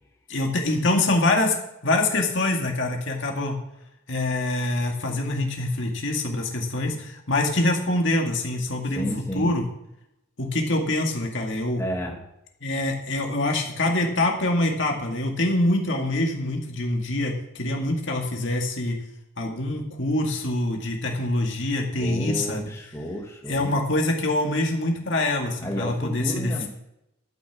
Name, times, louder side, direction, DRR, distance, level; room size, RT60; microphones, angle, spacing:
voice 1, 0.3-1.6 1.8-3.6 4.1-9.1 9.3-9.6 10.4-11.8 12.6-19.0 19.4-22.7 23.5-26.5, left 2 dB, 60° left, 1 dB, 2.1 m, -25 dB
voice 2, 8.9-9.5 11.8-12.2 22.0-23.7 25.6-26.7, equal, 15° left, -1 dB, 1.9 m, -31 dB
13.0 x 6.4 x 7.4 m, 0.83 s
head